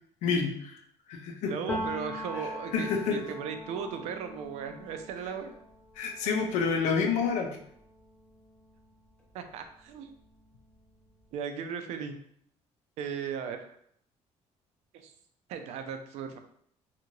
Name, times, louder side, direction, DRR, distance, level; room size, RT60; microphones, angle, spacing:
voice 1, 0.2-0.7 1.1-1.5 2.7-3.2 6.0-7.6, left 5 dB, 85° left, 3 dB, 0.5 m, -28 dB
voice 2, 1.4-5.5 9.3-10.1 11.3-12.2 13.0-13.7 14.9-15.1 15.5-16.4, right 7 dB, 70° right, 7 dB, 0.4 m, -37 dB
Piano, 1.7-9.3 9.6-11.2, left 1 dB, 10° left, 0.4 m, -42 dB
2.7 x 2.5 x 2.9 m, 0.67 s
cardioid pair, 180°, 12 cm